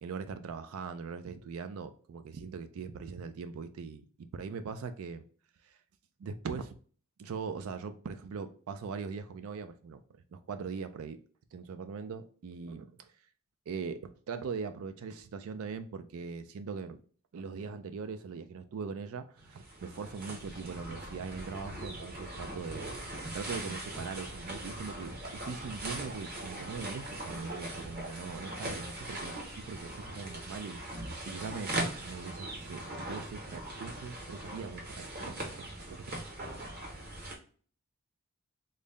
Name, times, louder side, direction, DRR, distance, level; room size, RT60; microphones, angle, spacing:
voice 1, 0.0-5.2 5.6-5.8 6.2-6.7 7.2-11.2 11.5-13.1 13.7-17.0 17.3-22.9 23.3-30.8 31.3-36.1, right 5 dB, 75° right, 0.4 m, -41 dB
sound 1, 19.4-37.3, right 1 dB, 45° right, 0.9 m, -40 dB
3.9 x 2.1 x 3.6 m
head